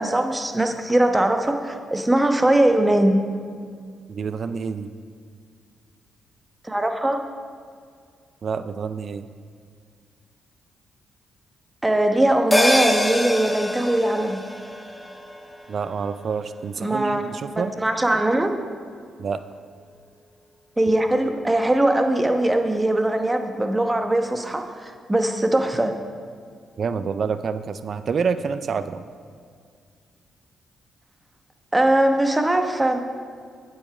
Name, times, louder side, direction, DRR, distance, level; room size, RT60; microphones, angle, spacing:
voice 1, 0.0-3.2 6.6-7.2 11.8-14.4 16.8-17.3 17.6-18.5 20.8-26.0 31.7-33.0, right 1 dB, 15° right, 5 dB, 1.0 m, -21 dB
voice 2, 4.1-4.9 8.4-9.3 15.7-17.7 19.2-19.4 26.8-29.0, right 6 dB, 55° right, 12 dB, 0.4 m, -27 dB
sound 1, 12.5-17.2 17.5-17.6, left 1 dB, 10° left, 1.0 m, -26 dB
8.6 x 7.5 x 4.9 m, 2.1 s
supercardioid pair, 50°, 0 cm